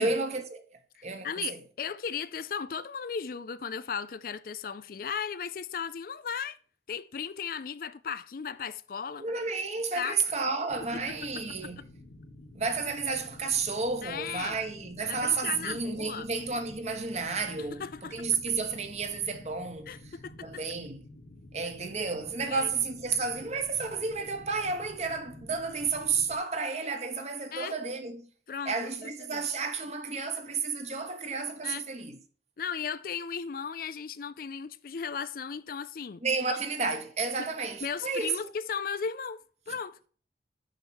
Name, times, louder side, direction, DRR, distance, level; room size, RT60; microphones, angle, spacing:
voice 1, 0.0-1.6 9.2-11.8 12.5-20.1 20.4-21.0 21.5-28.3 28.6-32.2 36.2-38.5, right 4 dB, 40° right, 1.1 m, -31 dB
voice 2, 0.9-6.6 6.9-9.3 10.0-10.2 10.9-11.4 14.0-14.6 15.1-16.3 17.7-18.3 19.9-20.5 22.5-22.7 27.5-27.7 28.5-29.4 31.6-31.8 32.6-36.2 36.5-36.6 37.4-37.5 37.8-40.0, left 6 dB, 55° left, 0.4 m, -36 dB
sound 1, 10.7-26.4, left 1 dB, 70° left, 1.3 m, -50 dB
6.4 x 5.8 x 6.3 m
head